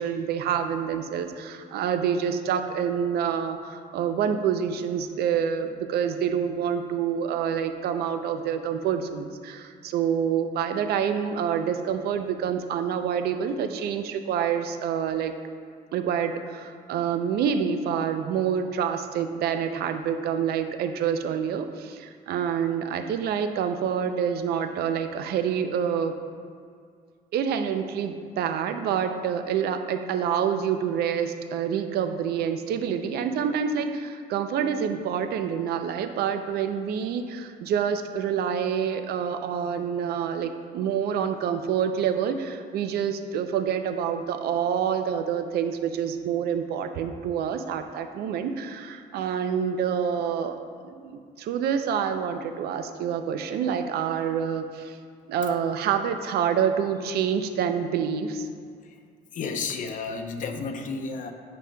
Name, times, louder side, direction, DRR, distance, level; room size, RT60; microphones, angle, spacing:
voice 1, 0.0-15.3 15.9-26.1 27.3-50.6 50.8-55.0 55.3-58.5, right 8 dB, 70° right, 8 dB, 0.5 m, -27 dB
voice 2, 59.3-61.3, left 4 dB, 50° left, 5 dB, 0.7 m, -32 dB
10.0 x 5.3 x 2.3 m, 2.2 s
cardioid pair, 110°, 17 cm